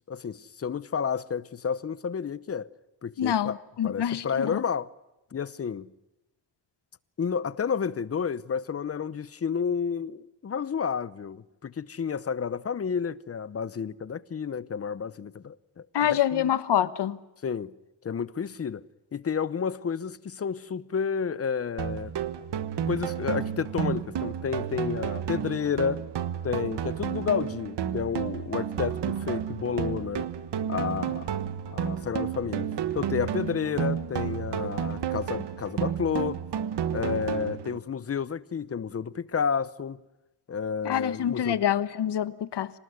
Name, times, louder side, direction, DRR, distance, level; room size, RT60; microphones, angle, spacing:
voice 1, 0.1-2.7 3.0-3.6 3.8-4.9 5.3-5.9 7.2-16.5 17.4-17.7 18.0-18.8 19.1-22.1 22.9-26.1 26.4-30.3 30.7-31.3 31.7-36.4 36.9-40.0 40.5-41.6, left 6 dB, 35° left, 0.8 m, -31 dB
voice 2, 3.2-4.6 15.9-17.2 40.8-42.7, left 10 dB, 65° left, 1.3 m, -26 dB
sound 1, 21.8-37.8, right 9 dB, 65° right, 1.4 m, -31 dB
26.0 x 19.5 x 9.5 m
wide cardioid pair, 150°, 44 cm